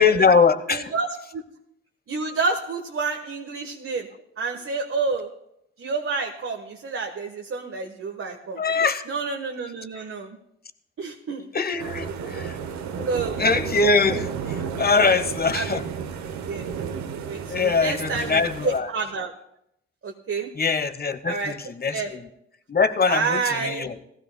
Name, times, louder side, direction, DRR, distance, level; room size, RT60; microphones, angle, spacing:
voice 1, 0.0-0.9 8.6-9.0 11.5-12.6 13.0-13.1 13.4-15.8 17.5-18.9 20.6-22.3 22.7-24.0, left 4 dB, 35° left, 10 dB, 1.1 m, -22 dB
voice 2, 0.7-1.4 2.1-4.1 4.4-5.3 5.8-8.6 9.1-10.4 11.0-11.5 13.0-13.4 14.6-15.2 15.5-15.8 16.4-16.7 17.3-19.3 20.0-20.5 21.2-21.6 21.9-22.1 23.1-23.9, right 4 dB, 50° right, 2 dB, 1.3 m, -29 dB
sound 1, 11.8-18.8, right 7 dB, 70° right, 0.9 m, -32 dB
17.5 x 15.0 x 2.2 m, 0.78 s
hypercardioid pair, 45°, 29 cm